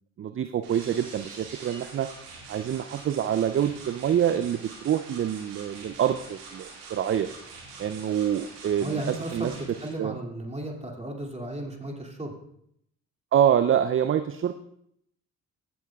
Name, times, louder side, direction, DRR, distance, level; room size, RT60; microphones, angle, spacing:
voice 1, 0.2-2.1 2.5-7.3 7.8-9.5 10.0-10.1 13.3-14.6, right 9 dB, 30° right, 10 dB, 0.4 m, -26 dB
sound 1, 0.6-9.9, right 4 dB, 80° right, 2.2 m, -45 dB
voice 2, 8.8-9.6 9.8-12.3, right 1 dB, 15° right, 0 dB, 2.4 m, -35 dB
15.5 x 8.5 x 2.3 m, 0.73 s
hypercardioid pair, 45°, 45 cm